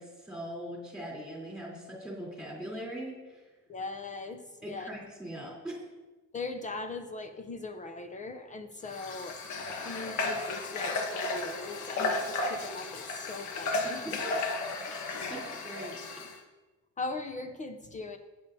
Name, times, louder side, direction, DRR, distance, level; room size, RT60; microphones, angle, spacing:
voice 1, 0.0-3.4 4.6-5.8 15.3-16.0, right 1 dB, 5° right, -4 dB, 3.3 m, -41 dB
voice 2, 3.7-4.9 6.3-9.4 9.7-14.2 17.0-18.2, left 3 dB, 25° left, 7 dB, 0.5 m, -40 dB
Water / Water tap faucet, 8.9-16.4, left 3 dB, 65° left, 1.4 m, -34 dB
16.0 x 9.2 x 2.7 m, 1.2 s
cardioid pair, 165°, 31 cm